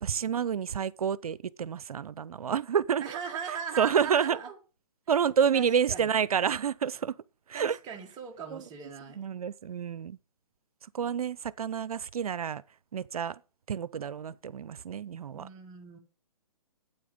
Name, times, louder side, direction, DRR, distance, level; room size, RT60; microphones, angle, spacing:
voice 1, 0.0-3.0 3.8-4.4 5.1-7.1 7.5-7.8 8.5-8.6 9.2-10.2 10.9-12.6 12.9-13.4 13.7-15.5, right 7 dB, 80° right, 0.6 m, -29 dB
voice 2, 3.0-4.6 5.5-6.1 7.5-9.2 15.3-16.0, right 7 dB, 20° right, 1.5 m, -39 dB
8.8 x 8.5 x 5.2 m
hypercardioid pair, 145°, 19 cm